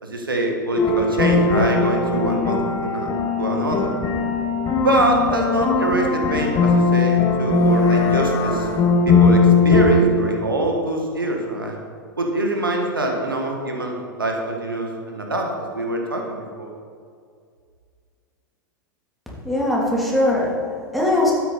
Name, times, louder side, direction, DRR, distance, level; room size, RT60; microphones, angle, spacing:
voice 1, 0.0-3.1 3.4-4.0 4.8-8.7 9.0-11.8 12.2-16.7, right 1 dB, 85° right, 1 dB, 1.6 m, -24 dB
sound 1, 0.8-10.0, left 4 dB, 30° left, 1.6 m, -19 dB
voice 2, 19.4-21.3, left 1 dB, ahead, -5 dB, 3.3 m, -21 dB
12.5 x 9.4 x 4.3 m, 2.2 s
figure-of-eight pair, 90°, 11 cm